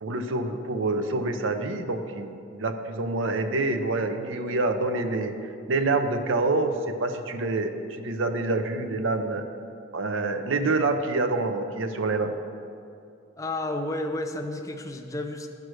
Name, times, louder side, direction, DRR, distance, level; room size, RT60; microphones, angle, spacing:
voice 1, 0.0-5.4 5.7-7.7 8.0-9.5 9.9-12.3, right 2 dB, 80° right, 8 dB, 0.6 m, -27 dB
voice 2, 13.4-15.5, left 1 dB, 15° left, 5 dB, 0.5 m, -31 dB
12.0 x 4.7 x 6.2 m, 2.5 s
head